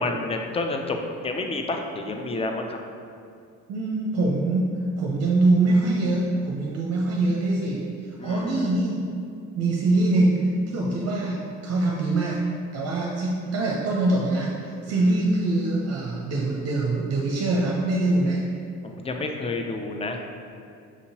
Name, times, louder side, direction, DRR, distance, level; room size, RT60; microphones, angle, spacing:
voice 1, 0.0-2.8 8.2-8.8 14.9-15.2 18.8-20.2, left 2 dB, 20° left, 3 dB, 0.4 m, -30 dB
voice 2, 3.7-7.8 8.2-9.0 9.6-12.4 12.7-18.4, right 2 dB, 55° right, -3 dB, 0.6 m, -23 dB
5.9 x 2.8 x 2.7 m, 2.4 s
cardioid pair, 90°, 30 cm